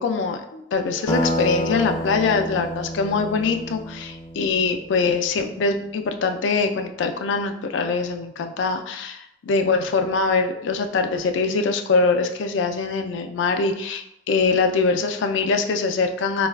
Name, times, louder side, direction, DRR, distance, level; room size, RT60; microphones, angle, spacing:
voice 1, 0.0-16.5, left 4 dB, 85° left, 6 dB, 0.3 m, -23 dB
sound 1, 1.1-5.4, equal, 15° left, 0.4 m, -29 dB
4.6 x 2.3 x 2.2 m, 0.82 s
head